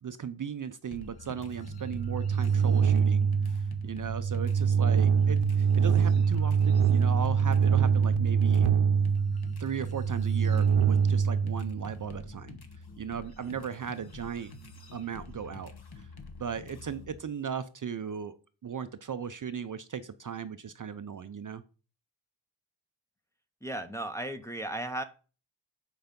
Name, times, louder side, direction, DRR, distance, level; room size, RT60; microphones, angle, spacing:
voice 1, 0.0-8.7 9.6-12.6 13.0-14.5 14.9-16.1 16.4-18.3 18.6-21.6, right 7 dB, 40° right, 11 dB, 0.5 m, -37 dB
sound 1, 0.9-17.2, left 3 dB, 50° left, 1.3 m, -48 dB
sound 2, 1.5-12.1, right 6 dB, 85° right, 0.8 m, -25 dB
voice 2, 23.6-25.0, right 1 dB, 5° left, 5 dB, 0.7 m, -35 dB
8.0 x 4.8 x 5.2 m, 0.36 s
wide cardioid pair, 100°, 48 cm